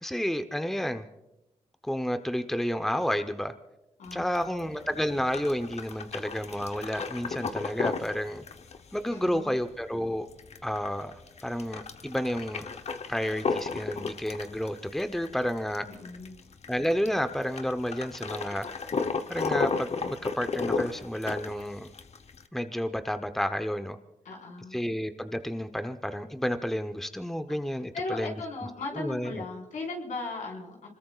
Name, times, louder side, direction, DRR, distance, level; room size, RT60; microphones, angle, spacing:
voice 1, 0.0-1.1 1.8-3.5 4.1-8.4 8.9-10.3 10.6-11.1 11.4-12.7 13.1-15.9 16.7-18.7 19.3-21.9 22.5-24.0 24.7-28.4 28.9-29.4, equal, 5° left, 9 dB, 0.9 m, -31 dB
voice 2, 4.0-4.9 9.1-9.5 15.9-16.4 24.2-24.8 27.5-27.6 27.9-31.0, left 3 dB, 80° left, -1 dB, 4.9 m, -38 dB
sound 1, 4.0-22.5, left 4 dB, 60° left, 1.0 m, -34 dB
26.0 x 21.0 x 2.5 m, 0.91 s
cardioid pair, 55°, 13 cm